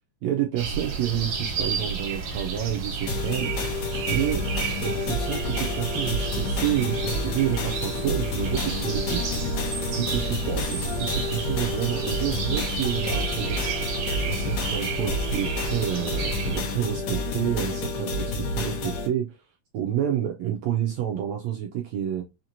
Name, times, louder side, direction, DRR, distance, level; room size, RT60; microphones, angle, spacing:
voice 1, 0.2-3.5 4.1-4.4 4.8-9.3 9.9-13.6 14.2-19.4 19.7-22.2, right 11 dB, 85° right, 1.5 m, -29 dB
sound 1, 0.6-16.6, right 5 dB, 65° right, 2.2 m, -31 dB
sound 2, 3.1-19.1, left 2 dB, 80° left, 2.5 m, -29 dB
5.7 x 2.9 x 2.6 m
omnidirectional pair, 3.8 m